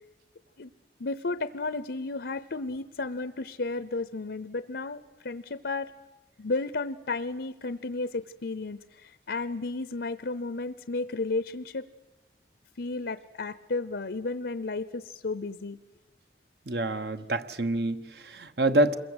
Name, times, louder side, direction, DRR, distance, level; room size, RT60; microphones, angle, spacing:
voice 1, 1.0-5.9 6.4-11.8 12.8-15.8, left 3 dB, 70° left, 14 dB, 0.8 m, -33 dB
voice 2, 16.7-19.0, right 1 dB, 60° right, 10 dB, 1.2 m, -27 dB
27.0 x 22.0 x 8.0 m, 1.1 s
head